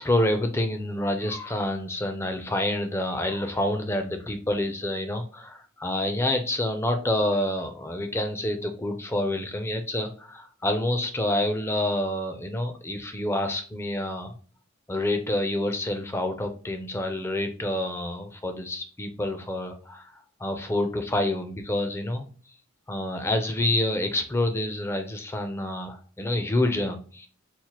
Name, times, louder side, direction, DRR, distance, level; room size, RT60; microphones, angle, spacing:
voice 1, 0.0-14.3 14.9-20.1 20.4-22.3 22.9-27.3, left 1 dB, 10° left, 6 dB, 0.4 m, -28 dB
4.3 x 2.1 x 2.9 m, 0.43 s
head